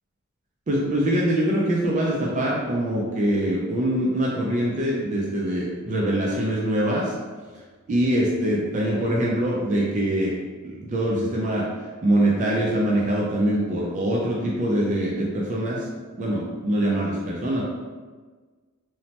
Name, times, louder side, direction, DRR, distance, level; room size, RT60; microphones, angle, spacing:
voice 1, 0.7-7.1 7.9-10.4 10.6-11.7 12.0-15.9 16.2-17.6, right 1 dB, 35° right, -4 dB, 0.3 m, -23 dB
3.1 x 2.0 x 2.8 m, 1.4 s
head